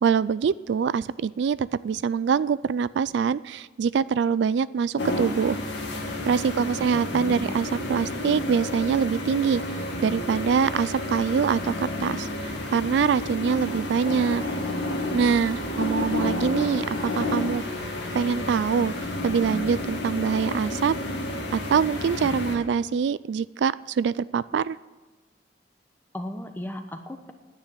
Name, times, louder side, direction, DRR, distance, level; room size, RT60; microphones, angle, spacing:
voice 1, 0.0-5.6 6.2-14.4 15.1-17.6 18.1-18.9 19.2-21.0 21.5-24.8, right 6 dB, 70° right, 18 dB, 0.3 m, -24 dB
sound 1, 5.0-22.6, left 1 dB, 80° left, 2.3 m, -30 dB
voice 2, 6.4-7.6 26.1-27.3, left 1 dB, 10° left, 6 dB, 1.0 m, -37 dB
10.0 x 9.0 x 9.4 m, 1.3 s
head